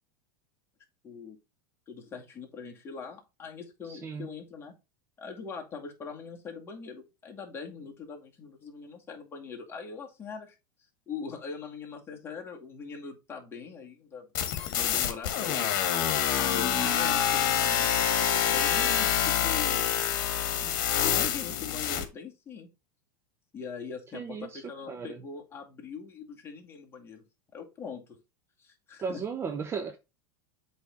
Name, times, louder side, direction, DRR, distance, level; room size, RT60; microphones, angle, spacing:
voice 1, 1.0-1.4 1.9-4.7 5.2-10.5 11.1-14.3 14.7-15.6 16.4-19.8 20.6-22.7 23.5-27.3 27.5-28.0 28.6-29.2, left 5 dB, 20° left, 2.2 m, -42 dB
voice 2, 3.9-4.3 24.1-25.2 29.0-30.0, right 6 dB, 25° right, 0.8 m, -36 dB
sound 1, 14.3-22.0, left 9 dB, 60° left, 1.6 m, -26 dB
7.9 x 3.6 x 3.9 m
supercardioid pair, 125°, 11 cm